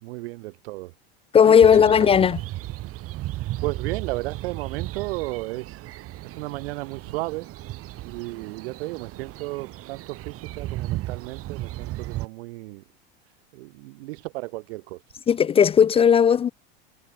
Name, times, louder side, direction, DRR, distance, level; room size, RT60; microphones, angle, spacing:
voice 1, 0.0-0.9 1.7-1.9 3.6-5.8 6.2-7.5 8.0-12.8 13.5-15.0, right 22 dB, 75° right, 1.7 m, -34 dB
voice 2, 1.3-2.4 15.3-16.5, left 7 dB, 20° left, 0.4 m, -16 dB
sound 1, 1.6-12.3, right 16 dB, 45° right, 2.6 m, -35 dB
supercardioid pair, 120°, 32 cm